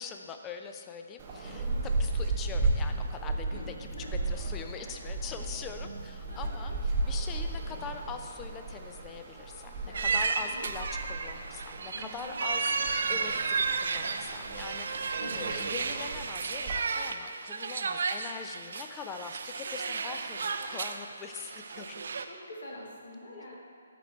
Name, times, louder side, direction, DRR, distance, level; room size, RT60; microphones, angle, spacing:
voice 1, 0.0-22.0 23.3-23.6, left 6 dB, 15° left, 6 dB, 0.4 m, -43 dB
sound 1, 1.2-16.8, right 2 dB, 25° right, 0.9 m, -35 dB
voice 2, 1.4-1.8 3.5-4.1 6.3-6.8 9.9-10.2 10.5-10.7 11.9-12.4 15.2-15.4 22.2-23.6, left 1 dB, 60° left, -3 dB, 1.8 m, -46 dB
sound 2, 9.9-22.2, right 4 dB, 55° right, 0.5 m, -33 dB
12.0 x 4.4 x 4.4 m, 2.4 s
figure-of-eight pair, 135°, 0 cm